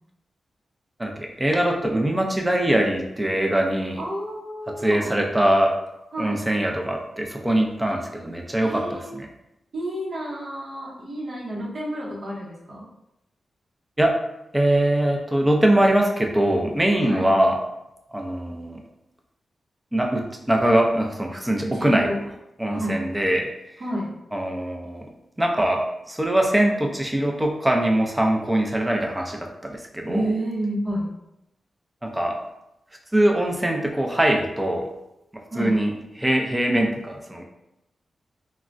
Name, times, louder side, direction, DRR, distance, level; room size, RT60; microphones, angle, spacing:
voice 1, 1.0-4.0 4.7-5.8 6.2-9.3 14.0-14.1 14.5-17.6 18.1-18.8 19.9-22.1 22.6-23.5 24.3-25.1 25.4-30.3 32.0-32.4 33.1-34.9 35.5-37.4, right 1 dB, 15° right, 1 dB, 0.5 m, -22 dB
voice 2, 4.0-5.2 6.1-6.5 8.6-9.2 9.7-12.9 17.0-17.3 21.6-22.2 22.7-23.1 23.8-24.1 30.1-31.1 35.5-35.9, right 1 dB, 55° right, -5 dB, 0.8 m, -30 dB
3.3 x 2.1 x 2.5 m, 0.87 s
cardioid pair, 80°, 0 cm